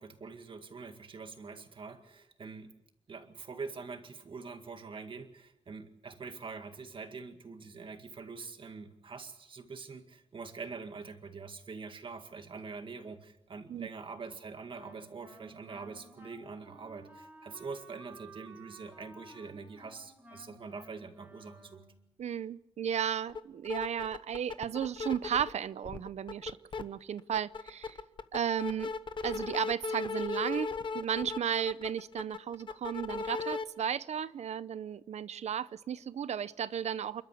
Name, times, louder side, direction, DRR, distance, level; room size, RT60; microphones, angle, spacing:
voice 1, 0.0-2.7 3.1-21.8, right 4 dB, 50° right, 7 dB, 2.0 m, -44 dB
Wind instrument woodwind instrument, 14.7-22.0, right 2 dB, 15° right, 4.1 m, -55 dB
voice 2, 22.2-28.0 28.3-28.9 29.2-37.2, right 8 dB, 80° right, 17 dB, 0.7 m, -34 dB
sound 1, 23.3-23.4 23.7-25.5 25.8-26.8 27.2-33.6, left 4 dB, 45° left, 1.1 m, -37 dB
29.0 x 12.5 x 8.4 m, 0.86 s
wide cardioid pair, 150°, 11 cm